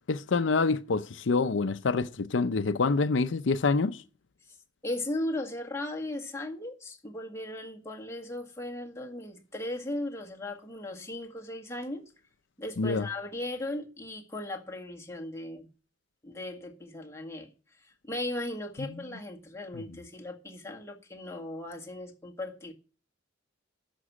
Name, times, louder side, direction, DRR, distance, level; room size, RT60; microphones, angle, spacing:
voice 1, 0.1-4.0 12.8-13.1, left 4 dB, 75° left, 0.6 m, -26 dB
voice 2, 4.8-12.0 12.6-15.7 16.2-17.5 17.8-22.7, left 1 dB, 15° left, 1.8 m, -37 dB
11.5 x 6.1 x 8.4 m
head